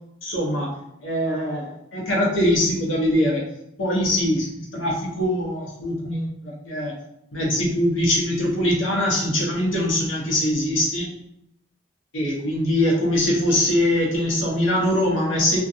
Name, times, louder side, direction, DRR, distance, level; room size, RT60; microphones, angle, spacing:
voice 1, 0.2-0.7 1.0-3.5 3.8-6.9 7.3-11.1 12.1-15.6, left 1 dB, 85° left, -3 dB, 0.9 m, -22 dB
2.5 x 2.3 x 2.6 m, 0.78 s
head